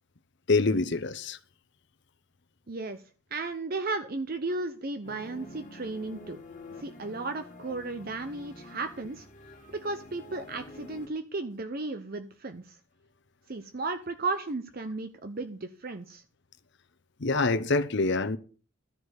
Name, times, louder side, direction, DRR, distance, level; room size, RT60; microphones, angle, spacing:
voice 1, 0.5-1.4 17.2-18.4, left 3 dB, 55° left, 0.8 m, -25 dB
voice 2, 2.7-3.0 3.3-6.4 6.8-9.3 9.7-12.8 13.5-16.2, right 3 dB, 45° right, 0.7 m, -34 dB
sound 1, 5.0-11.1, left 2 dB, 35° left, 1.9 m, -48 dB
13.0 x 5.1 x 8.0 m
head